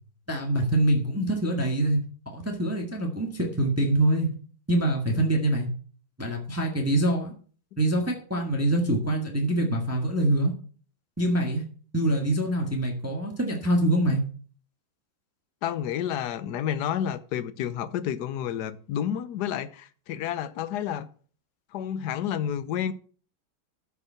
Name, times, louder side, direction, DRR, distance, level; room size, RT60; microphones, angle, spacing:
voice 1, 0.3-2.0 2.3-4.3 4.7-5.7 6.2-7.3 7.8-10.5 11.2-11.6 11.9-14.2, right 1 dB, 10° right, 1.6 m, -25 dB
voice 2, 15.6-21.1 21.7-22.9, left 9 dB, 65° left, 1.2 m, -30 dB
12.5 x 6.0 x 5.8 m
omnidirectional pair, 2.2 m